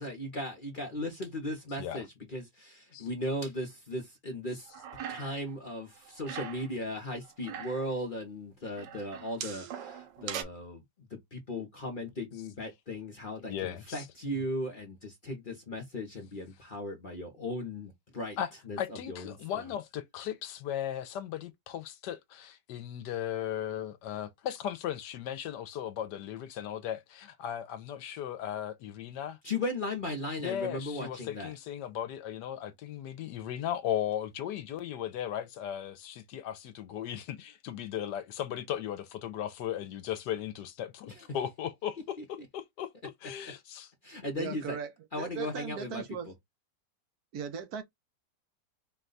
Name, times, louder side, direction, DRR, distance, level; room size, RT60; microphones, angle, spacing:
voice 1, 0.0-4.7 5.1-10.8 11.1-18.4 18.7-19.6 29.4-31.5 41.1-41.2 44.0-44.8 45.1-46.0, left 1 dB, 40° left, 0.7 m, -37 dB
sound 1, 4.7-5.5 5.8-6.7 7.2-7.9 8.8-10.4, right 8 dB, 80° right, 1.4 m, -41 dB
voice 2, 13.4-14.1 18.4-18.5 18.8-29.4 30.4-42.9 43.2-43.9, left 10 dB, 75° left, 1.2 m, -37 dB
voice 3, 44.3-44.9 45.2-46.3 47.3-47.8, right 7 dB, 65° right, 1.1 m, -38 dB
4.6 x 2.2 x 3.8 m
omnidirectional pair, 1.9 m